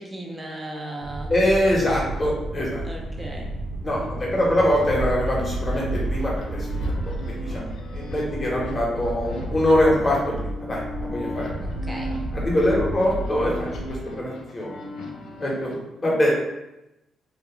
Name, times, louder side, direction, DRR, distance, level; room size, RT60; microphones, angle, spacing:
voice 1, 0.0-1.3 2.8-3.5 11.6-12.1, right 1 dB, 15° right, -1 dB, 0.5 m, -36 dB
sound 1, 1.0-14.0, right 1 dB, 75° right, 0.4 m, -31 dB
voice 2, 1.3-2.8 3.8-7.6 7.9-11.5 12.3-14.8 15.4-16.3, left 1 dB, 30° left, -4 dB, 1.0 m, -23 dB
sound 2, 4.0-15.8, left 2 dB, 75° left, 0.4 m, -38 dB
2.4 x 2.2 x 2.9 m, 0.93 s
supercardioid pair, 70°, 0 cm